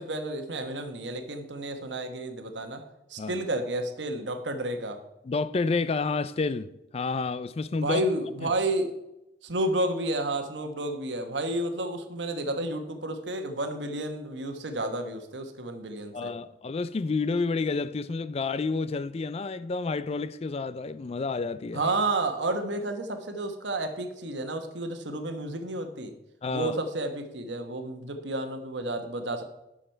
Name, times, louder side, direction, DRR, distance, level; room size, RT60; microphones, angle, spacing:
voice 1, 0.0-2.8 3.1-5.0 7.8-8.9 9.4-16.3 21.7-26.1 26.5-29.4, right 1 dB, 80° right, 1.2 m, -31 dB
voice 2, 5.2-8.0 8.4-8.5 16.1-21.9 26.4-26.7, left 4 dB, 35° left, 0.4 m, -30 dB
11.5 x 6.3 x 4.5 m
head